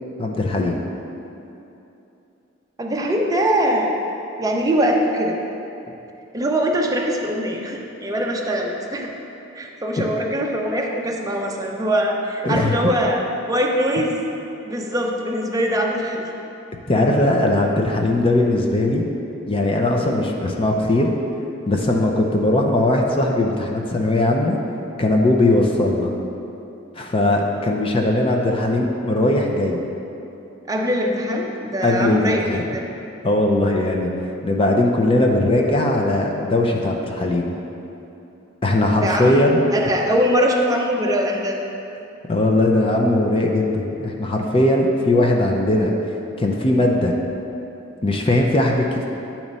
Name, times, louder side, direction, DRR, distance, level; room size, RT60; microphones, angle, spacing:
voice 1, 0.2-0.8 10.0-10.1 12.4-12.8 16.9-19.0 19.5-21.1 21.7-24.6 25.0-26.1 27.0-29.8 31.8-32.7 33.2-34.1 34.4-37.5 38.6-39.6 42.3-45.9 46.4-47.1 48.0-49.0, left 1 dB, 30° left, 1 dB, 0.5 m, -19 dB
voice 2, 2.8-3.9 4.4-5.4 6.3-9.1 9.5-13.2 13.5-14.2 14.7-16.3 30.7-32.4 32.7-32.8 38.9-39.5 39.7-41.6, equal, 20° right, 0 dB, 0.6 m, -22 dB
8.6 x 3.0 x 5.3 m, 2.9 s
head